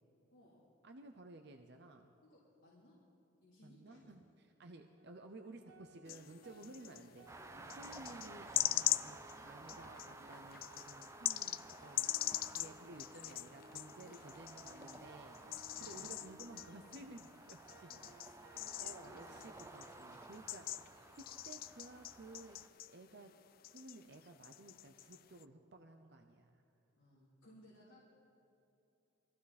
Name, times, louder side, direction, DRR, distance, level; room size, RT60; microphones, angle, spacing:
voice 1, 0.3-0.6 2.3-3.0 3.4-4.1 6.9-7.0 7.5-7.8 11.2-11.4 14.0-14.2 15.6-16.0 17.7-19.6 20.3-20.7 27.0-28.0, left 1 dB, 70° left, -8 dB, 3.2 m, -64 dB
voice 2, 0.8-2.1 3.6-9.2 9.5-15.4 15.8-17.9 18.8-20.9 21.1-22.6 22.9-23.3 23.7-26.6, right 2 dB, 55° right, 5 dB, 0.7 m, -55 dB
sound 1, 5.0-20.4, equal, 80° right, 1.5 m, -62 dB
sound 2, 6.1-7.1 7.7-15.0 15.3-23.4 23.6-25.4, left 14 dB, 45° left, 0.3 m, -42 dB
sound 3, 7.3-22.7, right 3 dB, 15° right, 0.5 m, -55 dB
22.0 x 15.0 x 4.2 m, 3.0 s
head